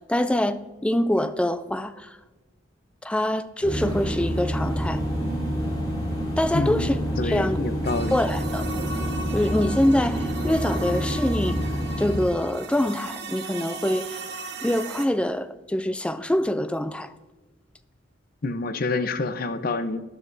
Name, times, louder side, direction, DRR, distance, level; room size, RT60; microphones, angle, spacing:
voice 1, 0.1-2.1 3.0-5.0 6.4-7.0 7.2-7.6 8.1-8.7 9.3-11.6 12.0-14.2 14.6-17.1, left 1 dB, 5° left, 0.4 m, -25 dB
sound 1, 3.6-12.2, equal, 25° left, 3.4 m, -28 dB
voice 2, 6.5-8.2 18.4-20.0, left 3 dB, 50° left, 0.6 m, -27 dB
sound 2, 7.8-15.1, right 3 dB, 60° right, 1.0 m, -37 dB
13.5 x 10.0 x 2.7 m
head